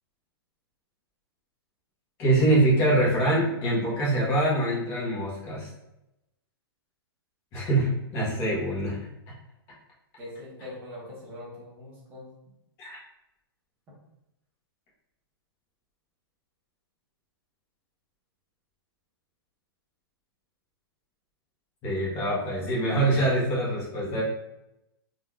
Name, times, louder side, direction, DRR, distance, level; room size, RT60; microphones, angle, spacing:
voice 1, 2.2-5.7 7.5-9.0 12.8-13.0 21.8-24.2, right 1 dB, 20° left, -7 dB, 1.2 m, -24 dB
voice 2, 10.2-12.3, left 1 dB, 15° right, -6 dB, 1.2 m, -42 dB
3.9 x 3.0 x 2.4 m, 0.89 s
hypercardioid pair, 170°, 13 cm